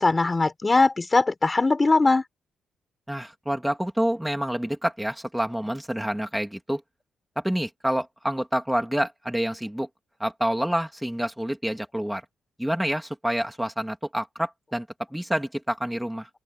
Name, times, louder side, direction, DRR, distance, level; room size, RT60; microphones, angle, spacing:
voice 1, 0.0-2.2, left 3 dB, 20° left, 5.2 m, -20 dB
voice 2, 3.1-6.8 7.4-9.9 10.2-12.2 12.6-16.3, equal, 5° right, 3.1 m, -28 dB
open air
cardioid pair, 115°, 0 cm